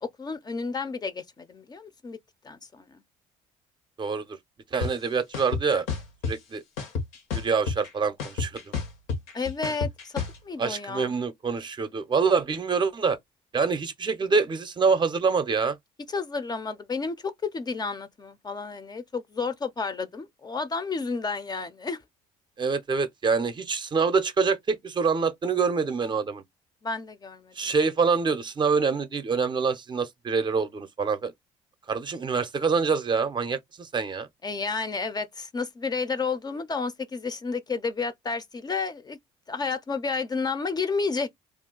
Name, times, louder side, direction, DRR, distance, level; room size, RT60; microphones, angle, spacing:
voice 1, 0.0-2.2 2.4-3.0 9.3-10.1 10.4-11.1 16.1-22.0 26.8-27.5 34.4-39.2 39.5-41.3, left 4 dB, 25° left, 0.5 m, -31 dB
voice 2, 4.7-5.9 6.3-6.6 7.3-8.8 10.6-13.2 13.5-15.8 22.6-26.4 27.6-31.3 31.9-34.3, right 5 dB, 30° right, 0.6 m, -25 dB
sound 1, 4.8-4.9 5.3-6.3 6.8-7.9 8.2-10.4, left 5 dB, 80° left, 1.0 m, -30 dB
2.4 x 2.2 x 3.7 m
supercardioid pair, 75°, 15 cm